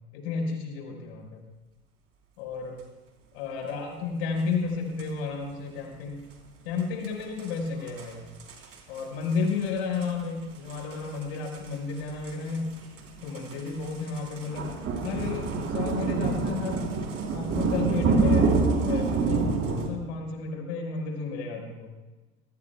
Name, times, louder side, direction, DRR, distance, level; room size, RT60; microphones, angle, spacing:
voice 1, 0.1-1.4 2.4-2.8 3.3-6.2 6.6-8.2 8.9-12.7 13.2-14.8 15.0-16.9 17.3-21.9, left 5 dB, 80° left, 1 dB, 5.6 m, -32 dB
sound 1, 5.0-5.1 6.8-6.9 7.0-7.1 7.4-7.5 7.9-8.1 8.4-9.0 9.3-9.6 9.9-10.1 10.7-19.9, right 4 dB, 45° right, 3.9 m, -27 dB
25.0 x 19.0 x 2.4 m, 1.2 s
supercardioid pair, 90°, 32 cm